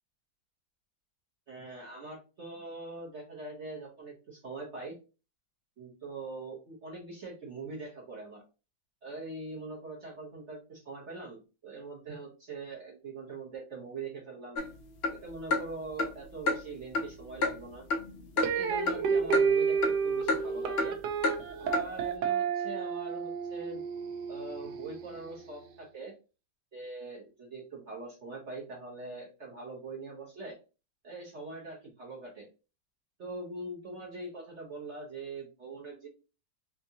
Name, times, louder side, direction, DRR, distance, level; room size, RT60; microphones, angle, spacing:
voice 1, 1.5-4.9 5.8-8.4 9.0-14.6 15.1-17.8 18.4-20.9 21.6-23.8 24.3-26.1 26.7-30.6 31.0-32.5 33.2-36.1, right 3 dB, 50° right, -3 dB, 1.0 m, -42 dB
sound 1, 14.6-14.7 15.0-15.2 15.5-15.7 16.0-16.1 16.5-16.6 16.9-17.1 17.4-17.6 17.9-18.1 18.4-18.5 18.9-19.0 19.3-19.4 19.8-19.9 20.3-20.4 20.8-20.9 21.2-21.4 21.7-21.9, left 2 dB, 70° left, 0.6 m, -28 dB
sound 2, 18.4-25.5, right 6 dB, 75° right, 1.2 m, -31 dB
3.5 x 2.6 x 2.7 m, 0.32 s
omnidirectional pair, 1.8 m